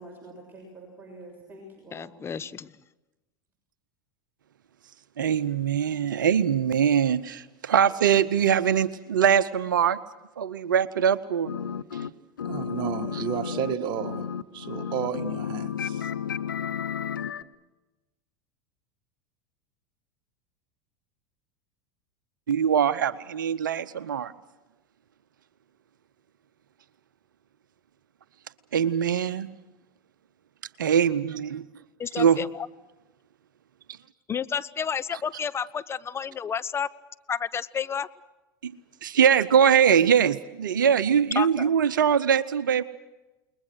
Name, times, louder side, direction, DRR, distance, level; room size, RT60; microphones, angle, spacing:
voice 1, 0.0-2.2, right 1 dB, 20° right, 6.7 m, -46 dB
voice 2, 1.9-2.7 32.0-32.5 34.3-36.9 37.3-38.1 41.3-41.7, left 7 dB, 25° left, 1.0 m, -30 dB
voice 3, 5.2-10.0 10.4-11.5 11.9-12.1 13.1-13.2 22.5-24.3 28.7-29.6 30.8-31.6 32.2-32.5 38.6-42.8, right 8 dB, 75° right, 0.7 m, -22 dB
sound 1, 11.5-12.1 12.4-17.4, left 7 dB, 85° left, 0.8 m, -32 dB
voice 4, 12.4-16.1, right 9 dB, 45° right, 1.7 m, -32 dB
29.0 x 21.0 x 6.3 m
hypercardioid pair, 85°, 11 cm